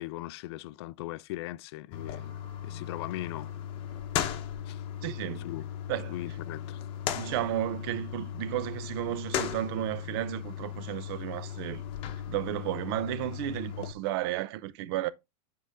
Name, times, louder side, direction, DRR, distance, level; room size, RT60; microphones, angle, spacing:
voice 1, 0.0-3.5 4.7-4.8 5.3-5.7 6.1-6.8 7.1-7.3, left 17 dB, 50° left, 0.4 m, -39 dB
sound 1, 1.9-13.9, left 10 dB, 30° left, 0.9 m, -37 dB
voice 2, 5.0-5.4 5.9-6.1 7.1-11.8 12.3-15.1, right 14 dB, 45° right, 0.6 m, -33 dB
9.6 x 3.8 x 3.4 m
supercardioid pair, 160°, 17 cm